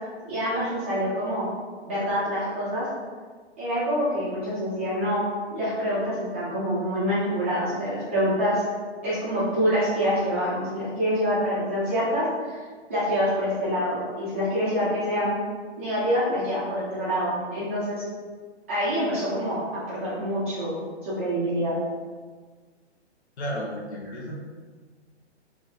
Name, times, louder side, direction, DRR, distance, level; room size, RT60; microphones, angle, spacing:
voice 1, 0.3-1.5 1.8-2.9 3.6-5.2 5.5-8.6 9.0-12.6 12.9-15.4 15.8-18.0 18.7-20.7 21.0-21.7, equal, 15° right, -11 dB, 0.4 m, -26 dB
voice 2, 23.4-24.3, equal, 75° left, -2 dB, 0.9 m, -32 dB
3.9 x 2.5 x 2.6 m, 1.5 s
hypercardioid pair, 145°, 34 cm